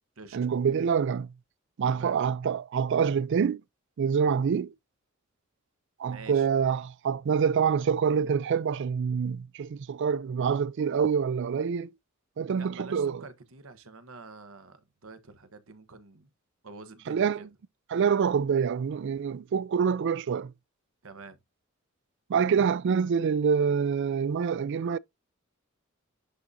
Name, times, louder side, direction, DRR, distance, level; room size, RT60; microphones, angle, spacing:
voice 1, 0.3-1.3 1.8-3.6 4.0-4.7 6.0-11.9 12.4-13.2 17.1-17.4 17.9-20.5 22.3-25.0, right 6 dB, 55° right, 0.3 m, -26 dB
voice 2, 6.1-6.5 12.6-16.3 16.6-17.5 21.0-21.4, right 3 dB, 75° right, 1.1 m, -47 dB
10.5 x 3.8 x 2.7 m
head